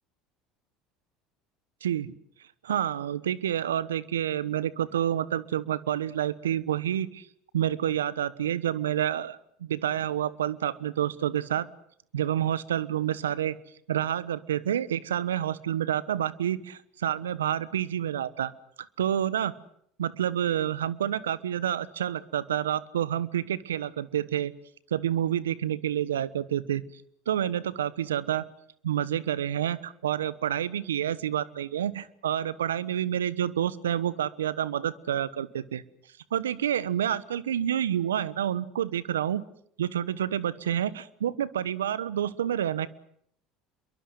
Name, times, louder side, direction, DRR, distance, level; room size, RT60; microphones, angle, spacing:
voice 1, 1.8-2.1 2.6-7.3 7.5-11.7 12.1-13.6 13.9-18.5 19.0-19.5 20.0-24.5 24.9-26.8 27.3-28.4 28.8-35.8 36.3-39.4 39.8-42.9, right 10 dB, 85° right, 18 dB, 1.2 m, -28 dB
27.5 x 23.0 x 8.0 m, 0.68 s
hypercardioid pair, 75°, 0 cm